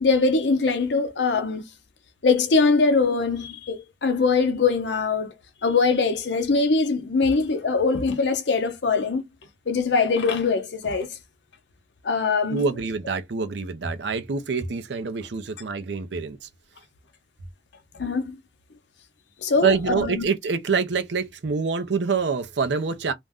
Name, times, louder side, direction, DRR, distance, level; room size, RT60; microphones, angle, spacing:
voice 1, 0.0-1.6 2.2-5.3 5.6-9.2 9.7-11.1 12.0-12.6 18.0-18.3 19.4-20.3, left 4 dB, 75° left, 0.7 m, -22 dB
voice 2, 12.5-16.4 19.6-23.1, right 5 dB, 75° right, 0.6 m, -26 dB
2.4 x 2.1 x 3.5 m
head